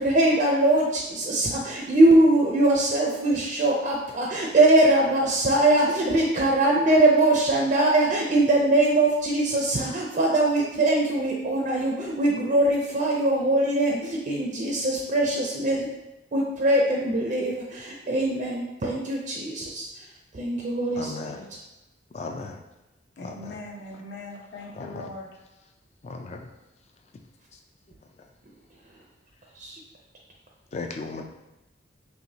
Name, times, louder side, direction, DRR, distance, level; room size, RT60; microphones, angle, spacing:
voice 1, 0.0-15.9 16.3-19.9 20.3-21.0 29.6-29.8, right 1 dB, 40° right, -2 dB, 0.4 m, -22 dB
voice 2, 21.0-21.4 22.1-22.6 23.2-23.6 24.8-25.1 26.0-26.5 28.2-28.3 30.7-31.2, left 3 dB, 35° left, 4 dB, 0.3 m, -36 dB
voice 3, 23.2-25.3, left 2 dB, 55° left, -2 dB, 0.8 m, -40 dB
4.7 x 2.9 x 2.7 m, 0.99 s
head